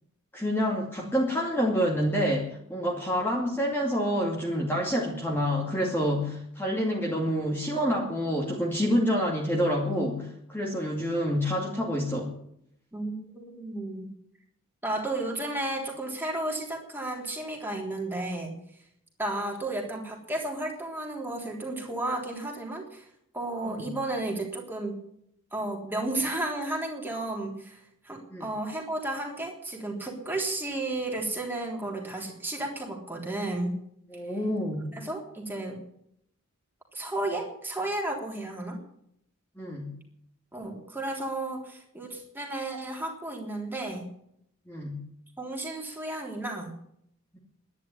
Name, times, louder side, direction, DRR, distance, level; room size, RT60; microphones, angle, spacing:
voice 1, 0.3-12.3 23.7-24.0 28.3-28.5 34.1-34.9 39.6-39.9 44.7-45.0, equal, 10° left, -3 dB, 2.5 m, -28 dB
voice 2, 12.9-14.1 14.8-18.5 19.2-23.1 23.3-25.0 25.5-33.8 34.9-35.8 36.9-38.8 40.5-44.1 45.4-46.7, right 2 dB, 10° right, 0 dB, 3.6 m, -33 dB
11.5 x 10.5 x 9.9 m, 0.71 s
head